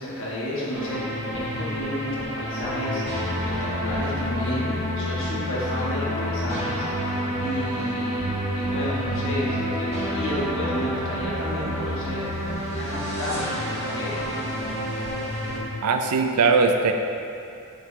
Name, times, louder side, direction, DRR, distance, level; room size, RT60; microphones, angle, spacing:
voice 1, 0.0-8.3 8.6-12.3 12.7-13.5 13.8-14.4, left 1 dB, 60° left, -6 dB, 1.5 m, -31 dB
sound 1, 0.7-15.6, equal, 30° right, 1.4 m, -28 dB
voice 2, 15.8-16.9, right 4 dB, 90° right, 5 dB, 0.5 m, -20 dB
7.3 x 4.7 x 2.8 m, 2.6 s
head